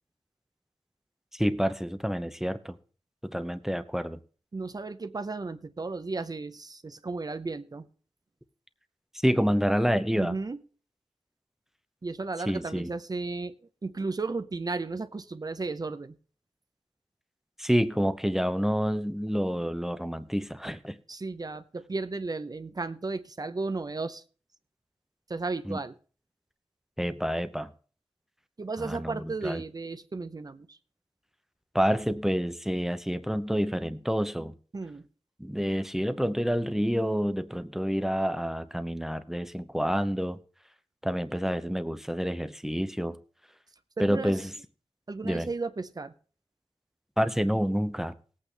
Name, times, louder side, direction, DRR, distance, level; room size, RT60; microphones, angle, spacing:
voice 1, 1.3-2.7 3.2-4.2 9.2-10.3 12.5-12.9 17.6-21.0 25.7-25.8 27.0-27.7 28.8-29.6 31.7-34.6 35.4-40.4 41.0-43.2 44.0-44.5 45.2-45.5 47.2-48.1, equal, 5° right, 0.7 m, -28 dB
voice 2, 4.5-7.9 10.1-10.6 12.0-13.5 13.8-16.2 21.1-24.2 25.3-25.9 28.6-30.8 34.7-35.1 44.0-44.4 45.1-46.1, right 3 dB, 40° right, 0.7 m, -34 dB
19.5 x 8.5 x 3.4 m
wide cardioid pair, 90°, 10 cm